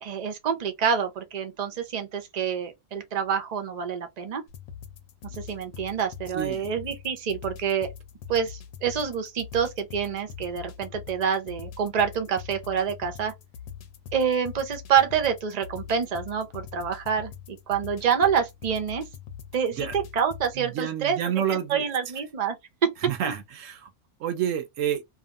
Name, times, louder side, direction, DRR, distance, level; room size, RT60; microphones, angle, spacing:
voice 1, 0.0-4.4 5.3-7.9 8.3-13.3 14.1-19.1 19.5-22.6 22.8-23.1, right 7 dB, 40° right, 0.6 m, -27 dB
sound 1, 4.5-20.5, left 8 dB, 85° left, 1.1 m, -43 dB
voice 2, 6.3-6.7 19.8-19.9 20.6-21.8 23.0-23.9 24.2-25.0, right 9 dB, 70° right, 1.0 m, -29 dB
2.8 x 2.5 x 2.4 m
omnidirectional pair, 1.4 m